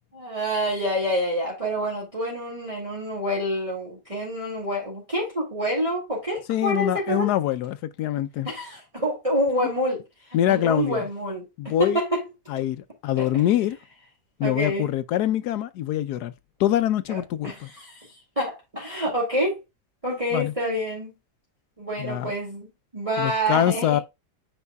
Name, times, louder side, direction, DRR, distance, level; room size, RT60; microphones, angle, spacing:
voice 1, 0.1-7.3 8.4-10.0 10.5-12.2 13.2-13.3 14.4-14.9 17.1-19.6 20.0-21.1 21.8-22.7 22.9-24.0, equal, 20° right, 2.4 m, -27 dB
voice 2, 6.5-8.5 10.3-11.1 11.6-12.0 12.5-13.8 14.4-16.3 16.6-17.7 20.3-20.5 22.0-22.3 23.2-24.0, left 12 dB, 75° left, 1.1 m, -24 dB
9.5 x 4.5 x 2.3 m
omnidirectional pair, 1.8 m